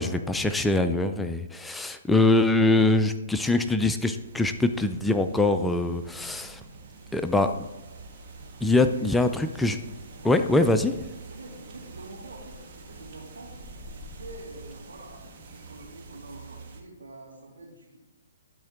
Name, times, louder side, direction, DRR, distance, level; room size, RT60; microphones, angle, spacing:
voice 1, 0.0-6.6 7.1-7.7 8.6-9.8 10.2-11.0, left 2 dB, 5° left, 8 dB, 0.3 m, -23 dB
sound 1, 4.1-16.8, right 3 dB, 45° right, 1.3 m, -45 dB
voice 2, 10.2-10.5 11.2-13.5 13.9-18.0, right 2 dB, 85° right, -3 dB, 2.7 m, -46 dB
11.5 x 4.4 x 3.6 m, 1.0 s
hypercardioid pair, 140°, 0 cm